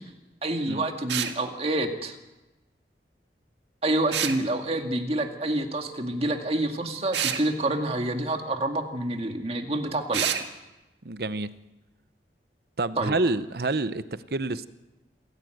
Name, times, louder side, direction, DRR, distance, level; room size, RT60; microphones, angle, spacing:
voice 1, 0.4-2.2 3.8-10.3 13.0-13.2, right 1 dB, 35° right, 4 dB, 2.2 m, -27 dB
sound 1, 1.1-1.4 4.1-4.4 7.1-7.4 10.1-10.5, right 9 dB, 90° right, 1.9 m, -27 dB
voice 2, 11.0-11.5 12.8-14.7, right 2 dB, 60° right, 13 dB, 0.9 m, -28 dB
27.5 x 15.5 x 7.9 m, 1.0 s
head